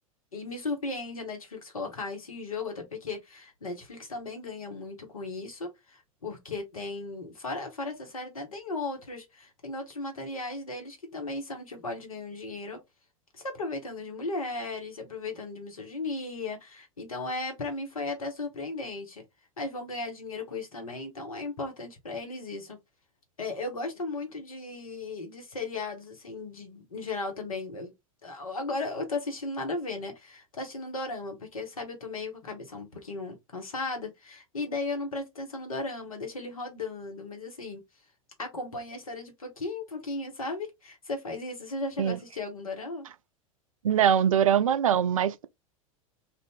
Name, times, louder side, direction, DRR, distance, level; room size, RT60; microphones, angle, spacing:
voice 1, 0.3-12.8 13.3-19.2 19.6-22.8 23.4-27.9 28.2-37.8 38.4-43.1, left 3 dB, 75° left, 1.2 m, -36 dB
voice 2, 43.8-45.5, right 9 dB, 70° right, 0.4 m, -23 dB
2.6 x 2.5 x 3.5 m
figure-of-eight pair, 85°, 18 cm